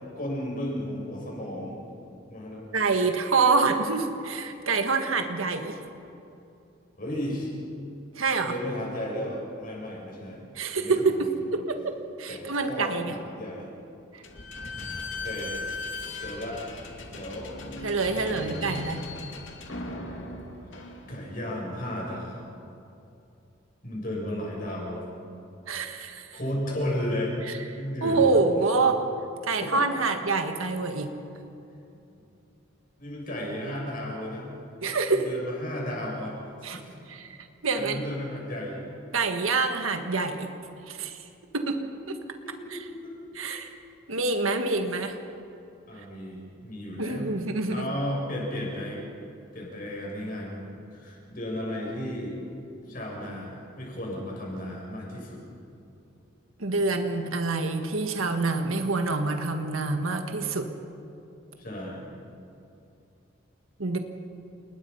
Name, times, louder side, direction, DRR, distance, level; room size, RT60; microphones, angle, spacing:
voice 1, 0.2-1.8 2.3-2.6 7.0-7.5 8.4-10.4 10.7-11.3 12.3-13.7 14.8-15.6 16.2-16.6 17.1-17.5 18.2-18.8 21.1-22.5 23.8-25.1 26.3-28.7 29.6-29.8 33.0-34.4 35.1-37.0 37.7-38.8 42.4-43.5 45.9-47.3 47.7-49.0 49.5-52.4 52.9-55.4 61.6-62.1, left 1 dB, 40° left, -2 dB, 7.3 m, -34 dB
voice 2, 2.7-5.8 8.1-8.5 10.5-13.1 14.1-14.2 17.8-19.0 25.7-26.4 27.5-27.6 28.0-29.0 29.4-31.1 34.8-35.2 36.6-36.8 37.1-37.4 37.6-38.0 39.1-40.5 40.9-41.2 41.5-41.8 42.1-42.2 42.7-42.8 43.3-43.7 44.1-45.2 47.0-47.8 56.6-60.7 63.8-64.0, right 3 dB, 85° right, 5 dB, 1.6 m, -26 dB
Slam / Squeak, 14.2-21.5, left 2 dB, 65° left, 2.8 m, -38 dB
30.0 x 20.5 x 5.6 m, 2.7 s
head